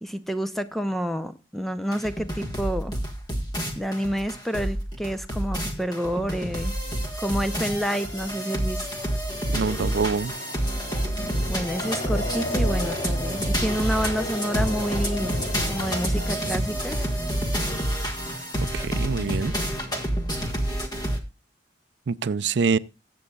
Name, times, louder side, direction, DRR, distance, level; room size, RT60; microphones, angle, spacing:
voice 1, 0.0-3.0 3.7-6.8 7.2-8.8 11.5-15.4 15.7-17.1, equal, ahead, 0.5 m, -29 dB
sound 1, 1.9-21.2, equal, 20° left, 1.5 m, -28 dB
sound 2, 7.4-18.2, left 1 dB, 40° left, 2.2 m, -38 dB
voice 2, 9.5-10.3 18.7-19.5 22.1-22.8, right 5 dB, 75° right, 0.4 m, -25 dB
20.5 x 7.8 x 2.3 m
head